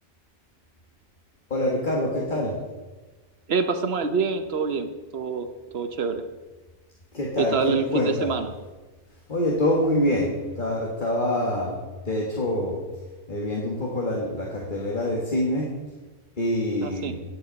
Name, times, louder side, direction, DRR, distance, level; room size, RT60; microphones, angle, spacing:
voice 1, 1.5-2.6 7.1-8.3 9.3-11.8 12.1-12.8 13.3-15.7 16.4-17.2, left 1 dB, 45° left, -3 dB, 1.8 m, -25 dB
voice 2, 3.5-5.5 5.7-6.2 7.4-8.5 16.8-17.1, right 5 dB, 65° right, 9 dB, 1.1 m, -26 dB
10.5 x 8.2 x 5.2 m, 1.2 s
omnidirectional pair, 1.1 m